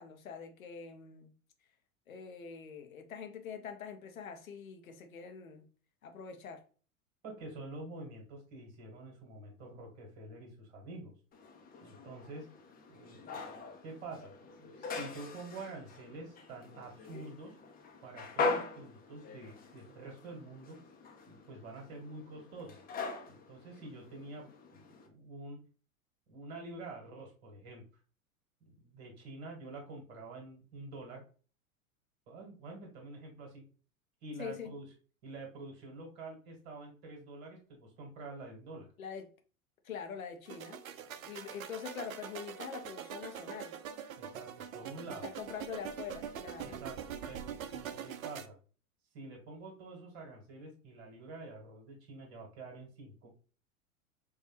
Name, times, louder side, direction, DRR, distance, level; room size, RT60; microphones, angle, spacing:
voice 1, 0.0-1.3 2.1-5.7 6.0-6.6 34.4-34.8 39.0-39.3 39.8-40.8 41.3-43.8 45.1-46.8, left 6 dB, 80° left, 0.8 m, -44 dB
voice 2, 7.2-11.1 11.8-12.5 12.9-13.4 13.8-17.6 18.0-20.8 21.3-22.8 23.3-25.6 26.3-27.8 28.7-31.2 32.3-33.6 34.2-34.9 35.2-38.9 41.2-41.3 44.2-45.2 46.6-48.5 49.1-53.3, right 2 dB, 50° right, 1.7 m, -47 dB
sound 1, 11.3-25.1, left 4 dB, 20° left, 0.7 m, -42 dB
sound 2, 40.5-48.5, right 8 dB, 80° right, 0.5 m, -44 dB
4.6 x 2.3 x 2.9 m
figure-of-eight pair, 85°, 41 cm